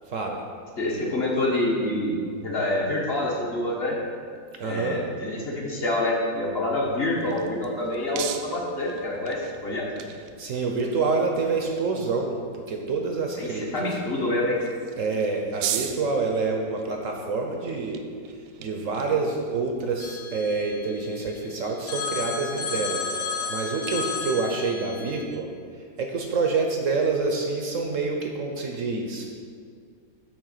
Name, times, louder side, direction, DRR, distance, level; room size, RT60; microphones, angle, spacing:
voice 1, 0.1-0.4 4.6-5.0 10.4-14.0 15.0-18.0 18.3-29.3, right 4 dB, 60° right, 2 dB, 0.9 m, -27 dB
voice 2, 0.8-4.0 4.6-9.9 13.4-14.6, left 1 dB, 40° left, -3 dB, 1.1 m, -27 dB
sound 1, 6.8-21.3, right 9 dB, 90° right, 1.3 m, -40 dB
Telephone, 20.0-21.4 21.9-25.2, left 5 dB, 85° left, 1.8 m, -33 dB
8.6 x 3.3 x 6.6 m, 2.1 s
omnidirectional pair, 1.9 m